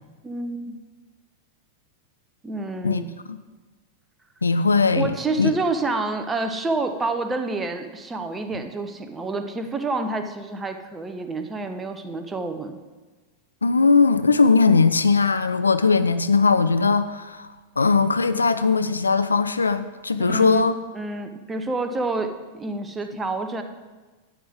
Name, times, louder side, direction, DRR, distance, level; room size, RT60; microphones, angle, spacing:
voice 1, 0.2-0.8 2.4-3.1 4.9-12.8 20.2-20.6 20.9-23.6, right 3 dB, 15° right, 7 dB, 0.9 m, -28 dB
voice 2, 4.4-5.5 13.6-17.5 17.8-20.8, left 4 dB, 75° left, 11 dB, 0.4 m, -19 dB
11.0 x 9.5 x 3.6 m, 1.3 s
figure-of-eight pair, 90°, 0 cm